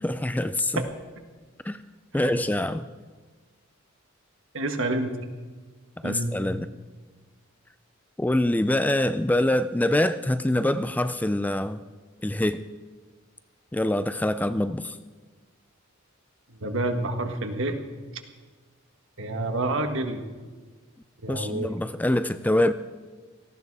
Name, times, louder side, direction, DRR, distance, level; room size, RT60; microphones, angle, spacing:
voice 1, 0.0-0.8 1.6-1.8 2.1-2.9 6.0-6.7 8.2-11.8 12.2-12.6 13.7-15.0 21.3-22.7, left 1 dB, 10° left, 12 dB, 0.4 m, -25 dB
voice 2, 2.1-2.5 4.5-5.2 6.0-6.3 16.5-17.8 19.2-20.2 21.2-21.7, right 2 dB, 65° right, 6 dB, 1.7 m, -28 dB
18.0 x 14.0 x 4.8 m, 1.4 s
head